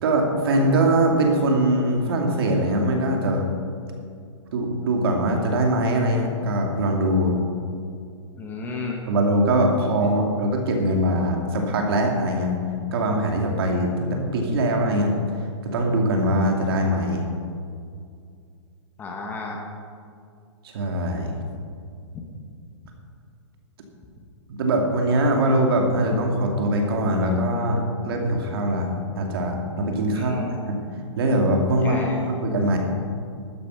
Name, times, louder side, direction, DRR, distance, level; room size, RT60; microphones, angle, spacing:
voice 1, 0.0-3.5 4.5-7.4 9.1-12.5 12.9-15.1 15.6-17.3 20.6-21.4 24.5-28.9 29.2-30.8 31.2-32.8, right 1 dB, 50° right, 2 dB, 2.4 m, -22 dB
voice 2, 8.4-9.0 10.0-10.1 19.0-19.6 30.1-30.6 31.7-32.3, left 3 dB, 10° left, 0 dB, 1.2 m, -33 dB
12.5 x 10.0 x 5.7 m, 2.3 s
hypercardioid pair, 160°, 16 cm